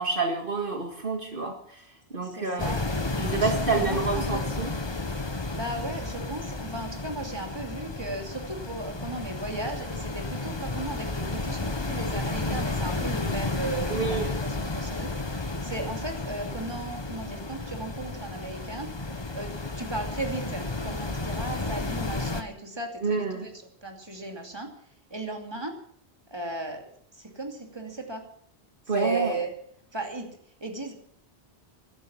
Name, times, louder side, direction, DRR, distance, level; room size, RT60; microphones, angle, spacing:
voice 1, 0.0-1.5 2.1-2.7 3.2-4.7 13.9-14.3 23.0-23.5 28.9-29.3, right 4 dB, 55° right, 3 dB, 2.1 m, -28 dB
voice 2, 2.2-2.8 3.4-4.4 5.6-18.9 19.3-19.5 19.8-23.5 23.8-24.7 25.1-25.8 26.3-26.9 27.1-28.2 28.9-29.5 29.9-30.3 30.6-30.9, right 2 dB, 25° right, 3 dB, 2.7 m, -36 dB
sound 1, 2.6-22.4, left 2 dB, 25° left, 1.2 m, -32 dB
16.0 x 12.5 x 7.1 m, 0.65 s
omnidirectional pair, 1.1 m